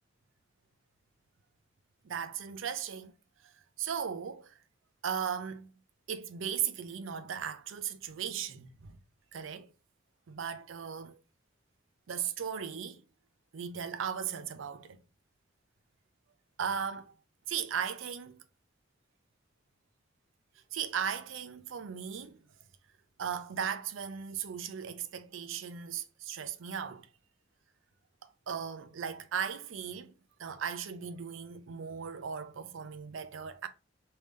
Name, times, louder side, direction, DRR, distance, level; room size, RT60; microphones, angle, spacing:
voice 1, 2.0-3.1 3.4-3.5 3.8-4.5 5.0-5.7 6.1-9.0 9.3-9.7 10.3-11.1 12.1-13.0 13.5-15.0 16.6-17.1 17.5-18.4 20.7-22.4 23.2-27.1 28.5-30.1 30.4-33.7, right 7 dB, 80° right, 0.5 m, -37 dB
3.3 x 2.7 x 3.4 m
head